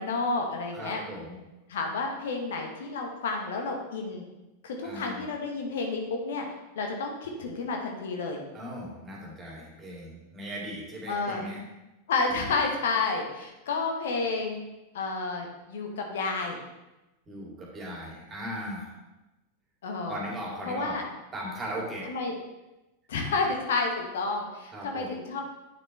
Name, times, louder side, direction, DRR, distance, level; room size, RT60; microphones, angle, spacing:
voice 1, 0.0-1.0 1.7-4.2 4.6-6.4 6.7-8.4 11.1-11.4 12.1-14.6 14.9-16.6 19.8-20.2 20.6-21.0 22.1-22.3 23.1-25.4, left 3 dB, 60° left, 2 dB, 1.1 m, -30 dB
voice 2, 0.7-1.4 4.8-5.2 8.5-11.6 12.3-12.4 17.3-19.0 20.1-21.0 21.3-22.1 24.7-25.1, right 1 dB, 20° right, -2 dB, 2.5 m, -38 dB
9.0 x 6.6 x 3.2 m, 1.0 s
figure-of-eight pair, 90°, 0 cm